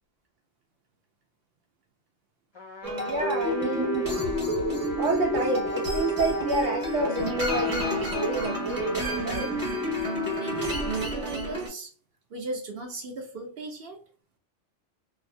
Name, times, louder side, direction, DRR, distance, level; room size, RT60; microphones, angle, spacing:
Trumpet, 2.5-11.1, left 1 dB, 30° left, 0.6 m, -40 dB
sound 1, 2.8-11.7, equal, 20° right, 1.1 m, -29 dB
voice 1, 3.0-4.1 5.0-9.5, right 2 dB, 85° right, 0.9 m, -29 dB
voice 2, 10.3-11.9 12.3-14.0, right 3 dB, 60° right, 0.8 m, -36 dB
2.7 x 2.0 x 2.5 m
omnidirectional pair, 1.3 m